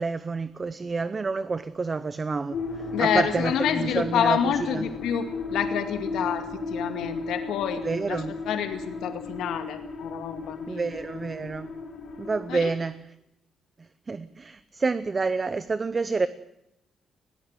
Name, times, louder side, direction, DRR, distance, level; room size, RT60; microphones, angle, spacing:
voice 1, 0.0-4.9 7.8-8.3 10.7-11.7 12.2-13.0 14.1-16.3, right 4 dB, 25° right, 0.8 m, -28 dB
sound 1, 2.5-12.6, left 3 dB, 60° left, 4.8 m, -35 dB
voice 2, 2.9-10.9 12.5-12.7, left 9 dB, 85° left, 2.2 m, -28 dB
21.0 x 17.5 x 8.1 m
cardioid pair, 135°, 0 cm